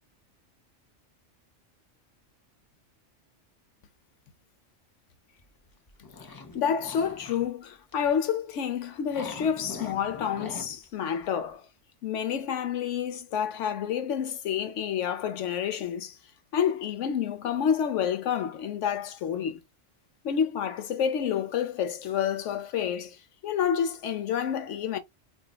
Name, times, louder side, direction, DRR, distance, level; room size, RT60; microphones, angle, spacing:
sound 1, 5.4-7.5 7.9-8.1 9.0-10.9 11.2-11.3, left 3 dB, 35° left, 0.3 m, -43 dB
voice 1, 6.5-11.6 12.0-16.2 16.5-19.6 20.2-23.2 23.4-25.0, left 8 dB, 80° left, 1.0 m, -29 dB
3.9 x 2.6 x 2.2 m
omnidirectional pair, 1.2 m